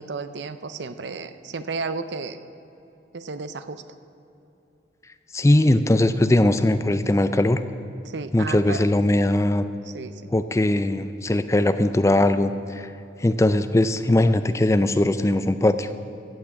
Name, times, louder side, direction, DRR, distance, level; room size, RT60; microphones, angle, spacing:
voice 1, 0.0-2.4 3.1-3.8 8.0-8.9 9.8-10.1, right 4 dB, 75° right, 12 dB, 0.6 m, -33 dB
voice 2, 5.3-7.6 8.3-9.7 10.3-12.9 13.2-15.9, left 1 dB, 15° left, 11 dB, 0.4 m, -20 dB
15.0 x 6.0 x 8.1 m, 2.9 s
head